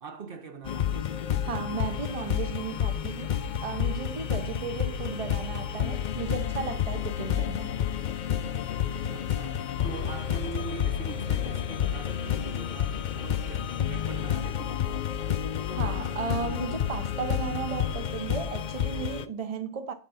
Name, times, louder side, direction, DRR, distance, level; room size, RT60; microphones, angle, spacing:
voice 1, 0.0-1.1 9.1-14.8, right 5 dB, 60° right, 1.0 m, -42 dB
sound 1, 0.6-19.2, left 10 dB, 55° left, 0.6 m, -30 dB
sound 2, 0.9-19.1, left 7 dB, 85° left, 0.9 m, -41 dB
voice 2, 1.4-7.8 15.7-19.9, right 6 dB, 40° right, 0.7 m, -35 dB
8.9 x 3.8 x 5.5 m
omnidirectional pair, 1.1 m